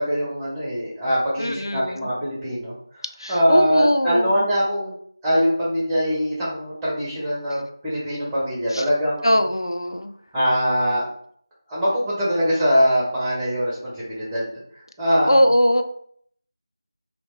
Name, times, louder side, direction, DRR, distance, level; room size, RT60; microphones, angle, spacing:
voice 1, 0.0-4.9 5.2-9.4 10.3-11.0 11.7-14.5 14.7-15.4, equal, 5° right, -8 dB, 0.8 m, -23 dB
voice 2, 1.4-2.1 3.2-4.4 8.7-8.8 9.2-10.1 15.2-15.8, equal, 75° left, 7 dB, 0.4 m, -21 dB
3.2 x 2.8 x 4.2 m, 0.63 s
figure-of-eight pair, 165°, 2 cm